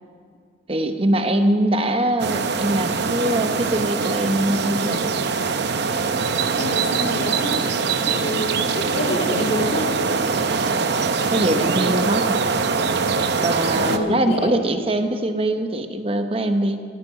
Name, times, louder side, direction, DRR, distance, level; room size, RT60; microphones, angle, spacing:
voice 1, 0.7-5.0 11.3-12.4 13.4-16.8, right 1 dB, 30° right, 7 dB, 0.9 m, -22 dB
sound 1, 2.2-14.0, right 4 dB, 55° right, 0.7 m, -23 dB
voice 2, 6.6-7.7 8.1-10.2 13.9-14.8, left 1 dB, 55° left, -1 dB, 2.0 m, -27 dB
18.0 x 14.0 x 4.8 m, 2.1 s
head